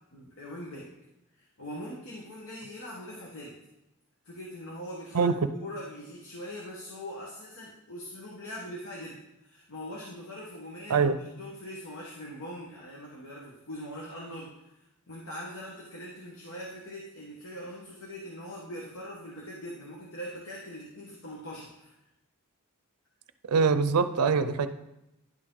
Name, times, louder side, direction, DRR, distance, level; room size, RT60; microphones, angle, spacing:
voice 1, 0.1-0.9 1.3-3.6 4.2-5.3 5.6-22.0, equal, 65° left, -3 dB, 1.2 m, -42 dB
voice 2, 23.5-24.7, right 5 dB, 85° right, 11 dB, 0.5 m, -23 dB
11.0 x 4.7 x 3.8 m, 0.89 s
head